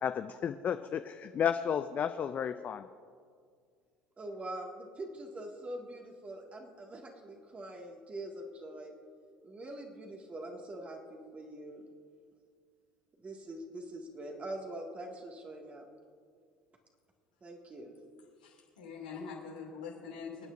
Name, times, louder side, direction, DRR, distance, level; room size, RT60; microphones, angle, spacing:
voice 1, 0.0-2.9, left 8 dB, 40° left, 10 dB, 0.4 m, -32 dB
voice 2, 4.2-8.9 9.4-11.8 13.2-15.9 17.4-18.0, right 1 dB, 30° right, 1 dB, 2.0 m, -44 dB
voice 3, 18.4-20.5, left 5 dB, 90° left, -2 dB, 2.6 m, -44 dB
26.5 x 9.1 x 2.6 m, 2.1 s
hypercardioid pair, 70°, 4 cm